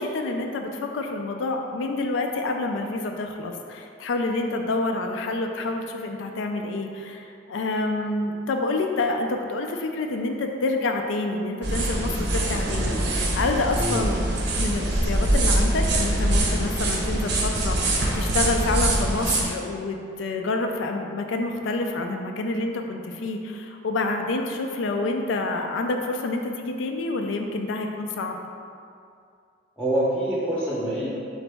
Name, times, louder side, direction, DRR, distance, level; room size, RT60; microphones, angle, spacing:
voice 1, 0.0-14.2 14.6-28.4, left 2 dB, 80° left, 3 dB, 0.4 m, -28 dB
sound 1, 11.6-19.5, right 1 dB, 60° right, 0.7 m, -24 dB
voice 2, 13.8-14.1 29.8-31.1, right 1 dB, 5° right, -8 dB, 0.6 m, -25 dB
3.9 x 3.9 x 3.4 m, 2.4 s
head